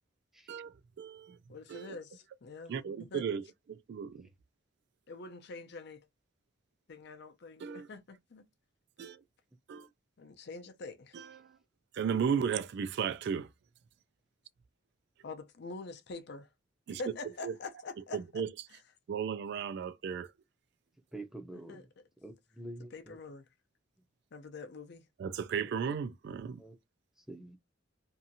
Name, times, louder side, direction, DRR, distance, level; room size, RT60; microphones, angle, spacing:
voice 1, 0.5-1.4 1.7-2.0 2.7-3.4 3.7-4.3 7.6-7.9 9.0-9.2 9.7-9.9 11.1-11.3 12.0-13.5 16.9-17.0 17.4-17.5 18.1-18.5 19.1-20.3 25.2-26.6, right 7 dB, 60° right, 0.3 m, -35 dB
voice 2, 1.5-2.7 3.0-3.3 5.1-6.0 6.9-8.4 10.2-11.2 15.2-16.5 16.9-18.4 18.7-18.8 21.7-21.8 22.9-23.4 24.3-25.0, left 3 dB, 60° left, 0.5 m, -45 dB
voice 3, 21.1-21.9 22.2-23.2 25.6-25.7 26.6-26.7 27.3-27.6, right 1 dB, ahead, 0.5 m, -46 dB
2.7 x 2.5 x 2.6 m
head